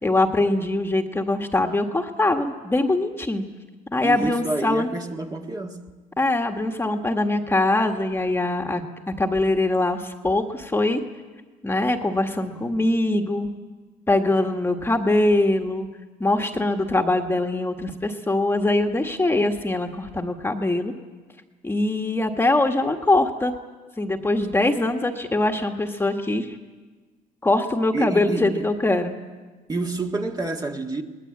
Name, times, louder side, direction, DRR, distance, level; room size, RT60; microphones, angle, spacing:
voice 1, 0.0-3.5 3.9-4.9 6.2-8.8 9.2-11.0 11.6-13.5 14.1-15.9 16.2-20.9 21.6-23.5 24.0-26.5 27.4-29.2, left 2 dB, 15° left, 1.7 m, -22 dB
voice 2, 4.0-5.9 27.9-28.7 29.7-31.0, right 3 dB, 20° right, 1.8 m, -28 dB
23.0 x 19.5 x 8.8 m
cardioid pair, 110°, 17 cm